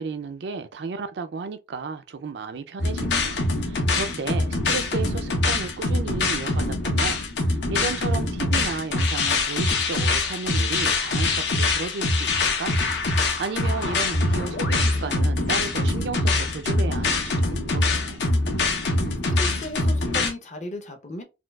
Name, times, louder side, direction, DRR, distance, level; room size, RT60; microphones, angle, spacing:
voice 1, 0.0-7.2 7.5-12.8 13.4-18.2, right 4 dB, 70° right, 0.4 m, -33 dB
sound 1, 2.8-20.3, left 2 dB, 75° left, 0.8 m, -24 dB
voice 2, 19.3-21.2, left 1 dB, 40° left, 0.6 m, -35 dB
4.3 x 2.3 x 2.2 m
head